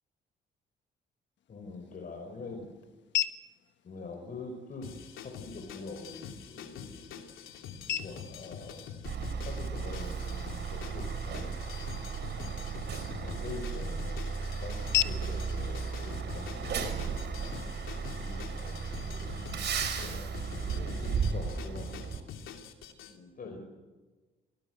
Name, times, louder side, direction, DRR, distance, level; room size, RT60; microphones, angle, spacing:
sound 1, 1.4-17.4, left 12 dB, 65° left, 1.4 m, -41 dB
voice 1, 1.5-2.7 3.8-4.9 5.2-7.2 7.8-8.9 9.2-11.9 13.2-17.5 18.0-19.3 19.9-22.2 23.1-23.7, left 3 dB, 45° left, 2 dB, 5.3 m, -45 dB
sound 2, 4.8-23.1, left 7 dB, 85° left, 3.0 m, -45 dB
Truck, 9.0-22.2, right 5 dB, 60° right, 4.4 m, -35 dB
26.0 x 18.5 x 8.1 m, 1.2 s
cardioid pair, 90°, 20 cm